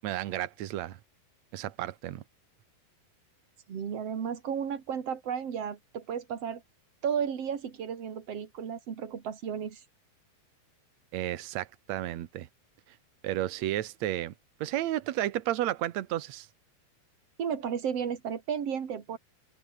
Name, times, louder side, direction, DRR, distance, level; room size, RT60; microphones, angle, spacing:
voice 1, 0.0-1.0 1.5-2.2 11.1-12.5 13.2-14.3 14.6-16.5, right 13 dB, 90° right, 1.5 m, -32 dB
voice 2, 3.7-6.6 7.0-9.8 17.4-19.2, right 7 dB, 40° right, 2.9 m, -33 dB
omnidirectional pair, 4.8 m